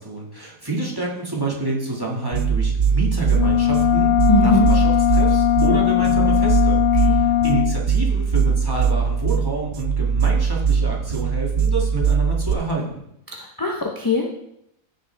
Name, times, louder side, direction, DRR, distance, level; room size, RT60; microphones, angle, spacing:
voice 1, 0.0-6.8 7.1-13.0, right 2 dB, 15° right, -3 dB, 2.0 m, -28 dB
sound 1, 2.3-12.5, right 6 dB, 55° right, 0.6 m, -21 dB
sound 2, 3.3-7.8, left 15 dB, 65° left, 0.6 m, -19 dB
voice 2, 4.3-4.7 7.1-7.2 13.4-14.3, left 1 dB, 15° left, 0 dB, 0.8 m, -21 dB
15.0 x 6.5 x 3.5 m, 0.77 s
omnidirectional pair, 1.5 m